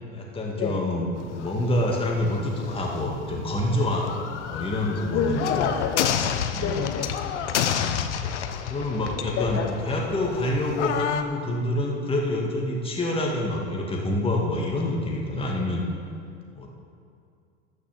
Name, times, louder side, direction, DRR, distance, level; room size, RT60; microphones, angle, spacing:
voice 1, 0.1-5.6 6.5-6.9 7.3-8.0 8.7-15.8 16.5-16.7, left 1 dB, 15° left, -1 dB, 2.1 m, -27 dB
sound 1, 1.2-11.2, left 8 dB, 75° left, 0.9 m, -30 dB
voice 2, 5.1-6.1 6.6-7.1 9.4-9.7, left 7 dB, 40° left, 1 dB, 1.2 m, -27 dB
13.0 x 6.2 x 7.4 m, 2.4 s
hypercardioid pair, 90°, 35 cm